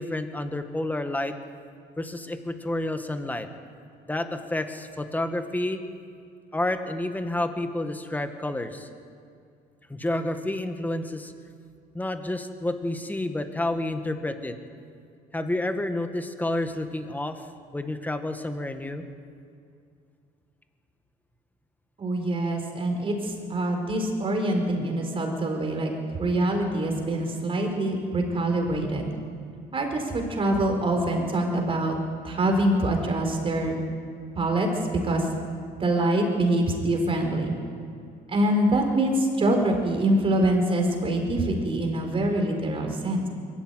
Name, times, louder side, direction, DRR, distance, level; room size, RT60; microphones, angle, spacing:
voice 1, 0.0-1.4 2.0-3.5 4.1-5.8 6.5-8.9 9.9-11.3 11.9-14.6 15.3-17.4 17.7-19.1, left 1 dB, 10° left, 7 dB, 1.7 m, -29 dB
voice 2, 22.0-25.9 26.2-29.1 29.7-31.9 32.2-33.8 34.3-35.2 35.8-37.5 38.3-43.3, right 1 dB, 35° right, 3 dB, 4.8 m, -25 dB
22.5 x 13.5 x 9.4 m, 2.3 s
cardioid pair, 110°, 17 cm